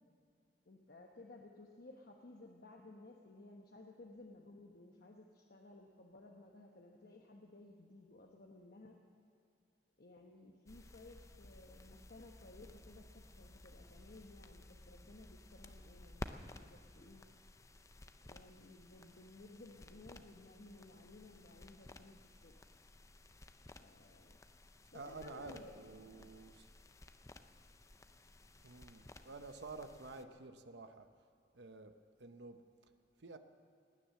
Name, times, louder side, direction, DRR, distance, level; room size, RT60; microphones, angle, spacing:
voice 1, 0.7-9.0 10.0-17.3 18.2-22.6 23.8-24.4 24.9-26.4, left 2 dB, 60° left, 1 dB, 1.1 m, -57 dB
sound 1, 10.7-30.2, left 2 dB, 20° left, 0.6 m, -56 dB
voice 2, 24.9-26.7 28.6-31.1 31.5-31.9 32.2-32.6 33.2-33.4, right 3 dB, 75° right, 8 dB, 0.9 m, -50 dB
18.5 x 10.0 x 7.5 m, 2.5 s
head